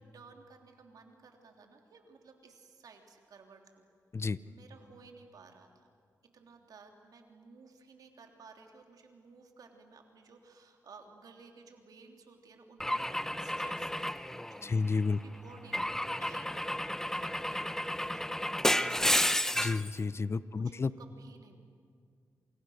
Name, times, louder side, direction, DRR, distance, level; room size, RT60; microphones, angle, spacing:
voice 1, 0.1-3.9 4.4-5.9 6.3-13.1 13.4-19.4 20.5-21.6, right 4 dB, 75° right, 3 dB, 3.4 m, -56 dB
Car / Engine / Glass, 12.8-15.0 15.7-19.9, left 1 dB, 5° left, 1.0 m, -32 dB
voice 2, 14.6-15.2 19.5-20.9, left 4 dB, 40° left, 17 dB, 0.8 m, -31 dB
28.0 x 27.5 x 6.6 m, 2.1 s
cardioid pair, 65°, 6 cm